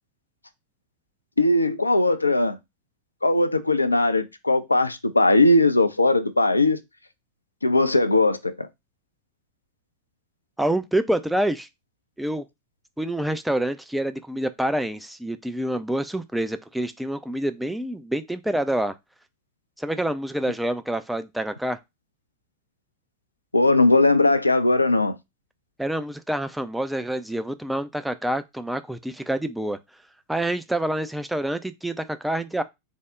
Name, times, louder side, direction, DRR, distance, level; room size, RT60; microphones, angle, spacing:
voice 1, 1.4-2.6 3.2-6.8 7.6-8.7 23.5-25.2, left 2 dB, 85° left, 0.3 m, -19 dB
voice 2, 10.6-11.7 12.2-12.4 13.0-18.9 19.8-21.8 25.8-29.8 30.3-32.6, right 1 dB, 5° right, 0.3 m, -27 dB
3.5 x 2.0 x 3.6 m
figure-of-eight pair, 90°, 0 cm